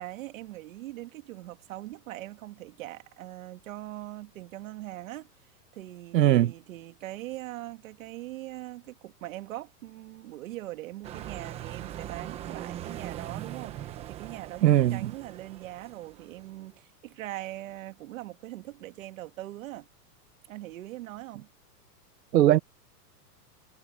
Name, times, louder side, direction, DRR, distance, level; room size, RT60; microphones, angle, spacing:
voice 1, 0.0-5.3 5.7-14.6 14.9-19.9 20.5-21.5, right 16 dB, 55° right, 2.4 m, -41 dB
voice 2, 6.1-6.5 14.6-15.1 22.3-22.6, right 13 dB, 90° right, 1.3 m, -20 dB
sound 1, 11.0-16.7, right 12 dB, 15° right, 0.8 m, -41 dB
supercardioid pair, 170°, 48 cm